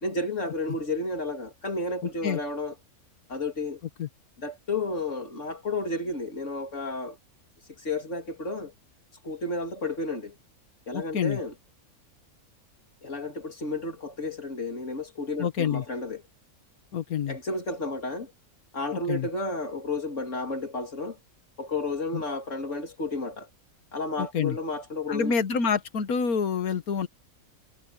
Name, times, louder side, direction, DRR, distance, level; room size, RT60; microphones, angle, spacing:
voice 1, 0.0-2.7 3.3-3.8 4.4-7.2 7.8-8.7 9.2-10.3 10.9-11.5 13.0-16.2 17.3-18.3 18.7-21.2 21.6-23.5 23.9-25.4, left 2 dB, 55° left, 3.4 m, -32 dB
voice 2, 10.9-11.4 15.4-15.8 16.9-17.4 19.1-19.3 22.1-22.2 24.2-24.6 25.1-27.1, left 6 dB, 80° left, 1.7 m, -27 dB
omnidirectional pair, 1.5 m